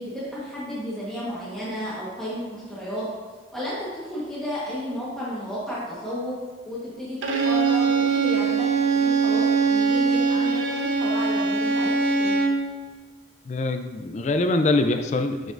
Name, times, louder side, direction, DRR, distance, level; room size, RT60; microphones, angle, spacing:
voice 1, 0.0-3.0 3.5-6.3 6.6-7.2 7.4-12.4, equal, ahead, -9 dB, 1.2 m, -32 dB
Bowed string instrument, 7.2-12.7, right 4 dB, 80° right, 0.8 m, -22 dB
voice 2, 13.4-15.5, left 2 dB, 40° left, 7 dB, 0.3 m, -23 dB
7.6 x 5.2 x 2.5 m, 1.5 s
head